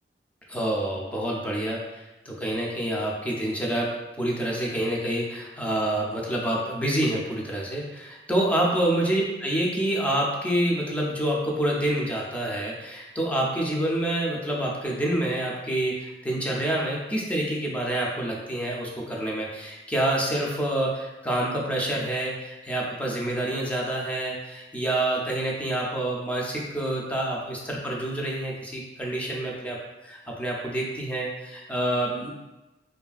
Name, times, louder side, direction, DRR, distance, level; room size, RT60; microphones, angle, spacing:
voice 1, 0.5-3.9 4.2-29.8 30.0-32.3, right 1 dB, 10° left, -3 dB, 0.4 m, -27 dB
3.1 x 2.3 x 2.3 m, 1.0 s
head